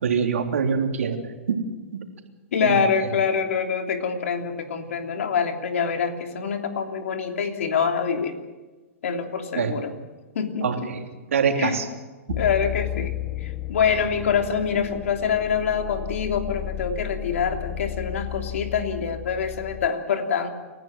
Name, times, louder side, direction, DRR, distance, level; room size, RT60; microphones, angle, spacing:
voice 1, 0.0-1.6 2.6-2.8 9.6-9.8 10.6-11.0 11.3-11.9, right 6 dB, 75° right, 4 dB, 3.3 m, -24 dB
voice 2, 2.5-8.4 9.0-9.9 10.3-10.9 11.6-11.8 12.4-20.5, left 6 dB, 70° left, 4 dB, 3.1 m, -25 dB
sound 1, 12.3-19.9, left 13 dB, 30° left, 0.9 m, -33 dB
29.0 x 15.0 x 7.6 m, 1.2 s
hypercardioid pair, 120°, 8 cm